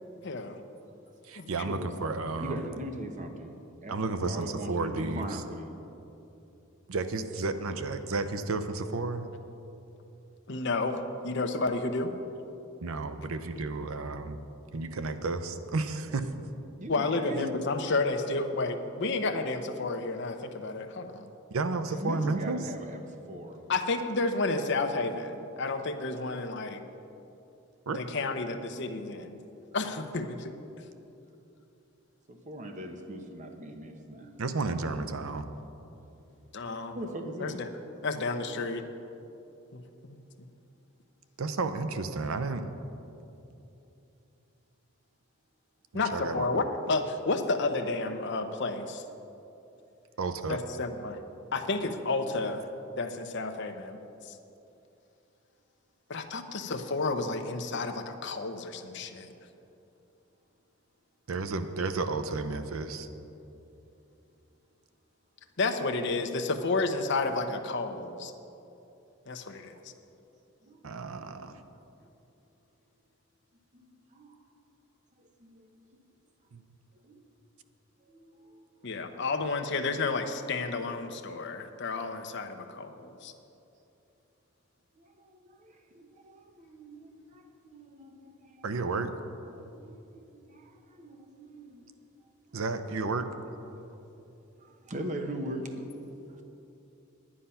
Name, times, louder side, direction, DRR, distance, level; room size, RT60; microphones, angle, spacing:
voice 1, 0.2-0.6 1.4-1.6 10.5-12.1 16.9-21.3 23.7-26.8 27.9-29.4 29.7-30.5 36.5-37.0 37.4-37.7 38.0-38.8 39.7-40.2 45.9-49.0 50.5-51.2 51.5-52.7 53.0-54.0 54.2-54.4 56.1-59.3 65.6-68.3 69.3-69.8 78.8-83.3, left 3 dB, 55° left, 6 dB, 0.8 m, -31 dB
voice 2, 1.3-2.6 3.9-5.4 6.9-9.3 12.8-14.4 14.7-16.3 21.5-22.6 27.9-28.0 34.4-35.4 41.4-42.7 46.1-46.5 50.2-50.6 61.3-63.1 70.8-71.5 76.5-76.6 88.6-89.1 92.5-93.3, right 3 dB, 80° right, 9 dB, 0.6 m, -32 dB
voice 3, 2.4-3.6 3.8-5.8 16.3-16.4 16.8-17.5 20.7-20.8 22.0-23.0 23.3-23.6 32.3-34.3 36.9-37.6 70.6-71.5 73.7-74.4 75.2-75.7 77.0-77.3 78.1-78.9 85.0-88.7 89.5-91.9 93.7-94.0 94.6-96.4, right 1 dB, 35° right, 4 dB, 0.9 m, -41 dB
10.0 x 10.0 x 5.6 m, 2.8 s
head